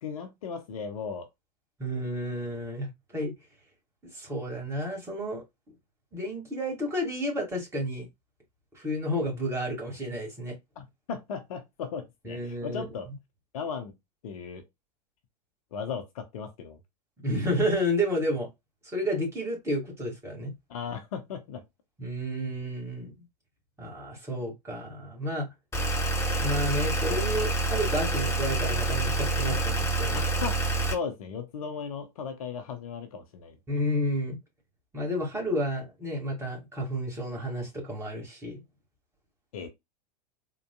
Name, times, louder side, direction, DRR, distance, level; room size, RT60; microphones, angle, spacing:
voice 1, 0.0-1.3 10.8-13.1 13.5-13.9 14.2-14.6 15.7-16.8 20.7-21.6 30.1-33.6 39.5-39.7, left 6 dB, 55° left, 0.9 m, -36 dB
voice 2, 1.8-2.9 3.1-3.3 4.1-5.4 6.1-8.1 8.8-10.5 12.2-12.8 17.2-18.5 18.9-20.5 22.0-23.1 23.8-25.5 26.4-30.2 33.7-34.4 34.9-38.6, equal, 10° right, 2.0 m, -31 dB
sound 1, 25.7-30.9, right 2 dB, 15° left, 1.2 m, -27 dB
3.9 x 2.7 x 2.2 m
figure-of-eight pair, 90°, 21 cm